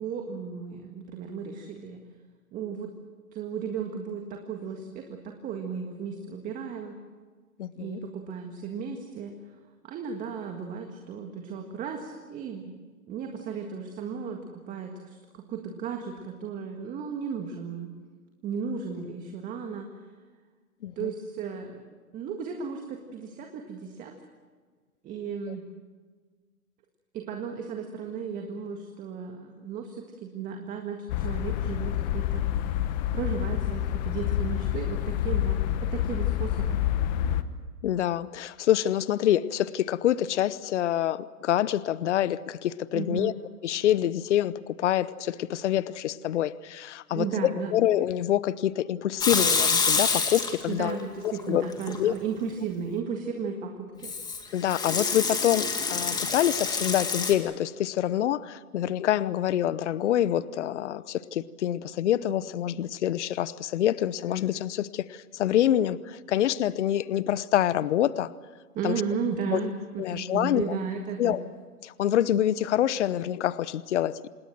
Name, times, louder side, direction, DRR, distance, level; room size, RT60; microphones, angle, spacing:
voice 1, 0.0-2.0 2.5-2.9 3.3-7.0 7.8-9.3 9.8-12.7 13.1-17.9 18.4-20.1 21.0-21.8 22.1-24.2 25.0-25.7 27.1-32.4 33.1-36.8 42.9-43.3 47.1-47.7 50.7-54.2 68.7-71.4, right 6 dB, 15° right, 4 dB, 1.8 m, -35 dB
voice 2, 7.6-8.0 20.8-21.1 37.8-43.3 43.6-51.6 52.0-52.1 54.5-68.3 68.8-69.0 69.5-69.6 70.0-70.8 71.2-71.4 71.8-74.3, left 11 dB, 50° left, 18 dB, 0.9 m, -26 dB
sound 1, 31.1-37.4, left 11 dB, 30° left, 1.1 m, -28 dB
Water tap faucet / Sink (filling or washing) / Liquid, 49.2-50.9 51.3-52.0 54.0-57.3, left 4 dB, 10° left, 2.1 m, -27 dB
27.0 x 20.0 x 7.7 m, 1.4 s
hypercardioid pair, 140°, 46 cm